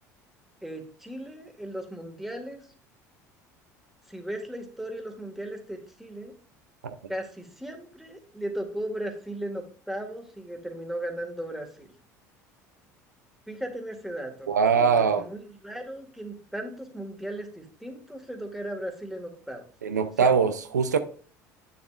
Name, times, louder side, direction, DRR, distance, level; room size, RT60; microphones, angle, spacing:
voice 1, 0.6-2.6 4.1-6.3 7.1-11.9 13.5-19.6 20.2-20.4, right 1 dB, ahead, 1.9 m, -36 dB
voice 2, 14.5-15.2 19.8-21.0, right 6 dB, 90° right, 0.5 m, -22 dB
9.0 x 6.8 x 2.5 m
hypercardioid pair, 70°, 9 cm